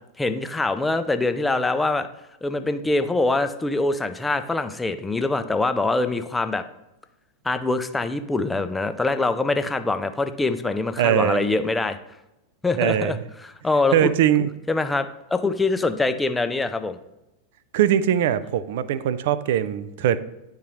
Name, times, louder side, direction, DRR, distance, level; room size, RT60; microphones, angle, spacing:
voice 1, 0.2-2.1 2.4-6.6 7.4-12.0 12.6-13.2 13.4-14.1 14.7-17.0, left 3 dB, 10° left, 9 dB, 0.4 m, -24 dB
voice 2, 11.0-11.4 12.8-13.2 13.9-14.5 17.7-20.2, right 10 dB, 55° right, 15 dB, 0.4 m, -21 dB
10.5 x 3.7 x 3.0 m, 0.94 s
figure-of-eight pair, 90°, 0 cm